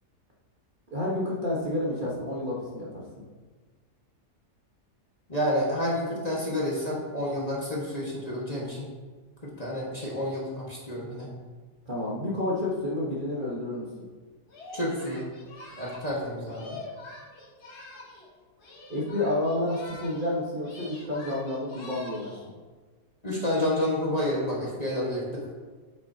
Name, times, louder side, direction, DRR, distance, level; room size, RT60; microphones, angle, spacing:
voice 1, 0.9-3.0 11.9-13.9 18.9-22.3, left 1 dB, 30° right, -5 dB, 1.3 m, -30 dB
voice 2, 5.3-8.9 9.4-11.3 14.7-15.2 15.8-16.8 23.2-25.5, left 1 dB, 25° left, -5 dB, 1.6 m, -29 dB
Singing, 14.5-18.3 18.6-20.3 20.6-22.5, left 2 dB, 65° left, 2.1 m, -45 dB
9.1 x 8.1 x 2.8 m, 1.4 s
omnidirectional pair, 1.8 m